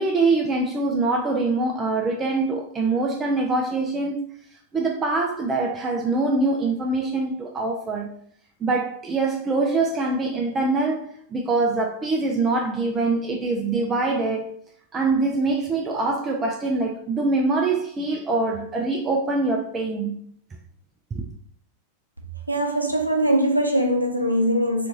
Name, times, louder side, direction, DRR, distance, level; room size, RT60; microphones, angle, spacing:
voice 1, 0.0-4.2 4.7-8.2 8.6-14.5 14.9-20.2 21.1-21.2, right 3 dB, 20° right, 0.4 m, -24 dB
voice 2, 22.5-24.9, right 1 dB, 90° right, 0.5 m, -21 dB
2.7 x 2.5 x 3.7 m
figure-of-eight pair, 90°, 0 cm